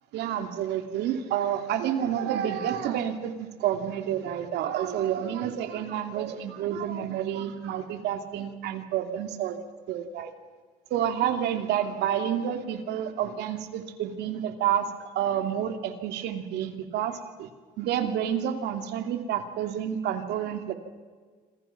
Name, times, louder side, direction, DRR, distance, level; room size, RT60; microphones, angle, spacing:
voice 1, 0.1-9.6 9.9-10.3 10.9-14.9 15.1-17.5 17.8-20.7, right 10 dB, 85° right, 6 dB, 2.6 m, -29 dB
27.0 x 26.0 x 5.9 m, 1.5 s
cardioid pair, 110°, 17 cm